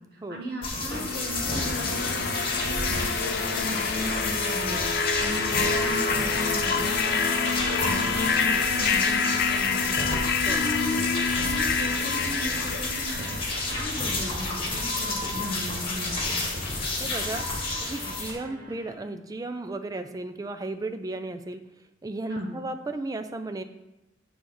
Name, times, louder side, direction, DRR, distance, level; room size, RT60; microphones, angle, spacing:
voice 1, 0.0-10.0 10.4-13.4 13.7-16.2 22.3-22.6, left 1 dB, 55° right, 1 dB, 1.2 m, -36 dB
sound 1, 0.6-18.3, left 2 dB, 30° left, 1.6 m, -30 dB
sound 2, 0.9-13.9, left 5 dB, 55° left, 0.5 m, -28 dB
sound 3, 2.9-18.9, right 1 dB, 70° right, 1.6 m, -48 dB
voice 2, 17.0-17.4 17.8-21.6 22.0-23.6, right 2 dB, 20° right, 8 dB, 0.4 m, -34 dB
7.9 x 3.4 x 6.1 m, 0.95 s
head